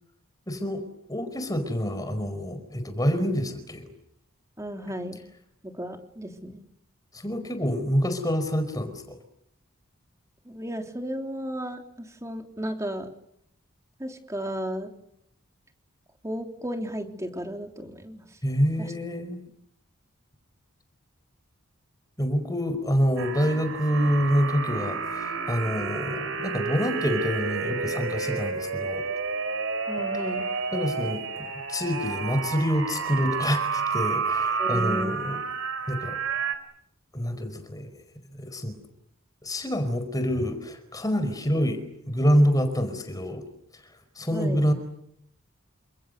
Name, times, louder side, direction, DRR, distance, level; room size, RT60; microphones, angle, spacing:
voice 1, 0.5-0.8 1.1-3.8 7.1-9.2 18.4-19.4 22.2-29.1 30.7-31.2 31.7-35.4 35.9-36.2 37.1-37.9 38.4-38.8 39.4-41.8 42.1-43.4 44.2-44.7, equal, 15° left, 9 dB, 4.8 m, -26 dB
voice 2, 4.6-5.2 5.6-6.6 10.4-13.1 14.0-14.9 16.2-18.2 18.8-18.9 29.9-30.5 34.6-35.2 44.3-44.7, equal, 15° right, 4 dB, 3.4 m, -34 dB
sound 1, 23.2-36.6, right 5 dB, 65° right, 3.8 m, -30 dB
29.5 x 27.5 x 6.8 m, 0.74 s
head